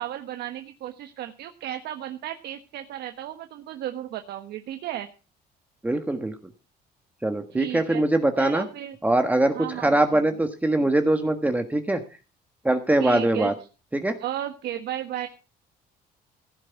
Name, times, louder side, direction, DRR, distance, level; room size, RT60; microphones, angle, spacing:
voice 1, 0.0-5.1 7.5-8.0 8.4-9.0 9.5-10.2 13.0-13.5 14.2-15.3, right 11 dB, 75° right, 7 dB, 1.2 m, -34 dB
voice 2, 5.8-6.3 7.2-8.6 9.0-12.0 12.6-13.5 13.9-14.2, right 1 dB, 10° right, 6 dB, 1.5 m, -22 dB
15.5 x 8.9 x 5.8 m, 0.35 s
cardioid pair, 110°, 17 cm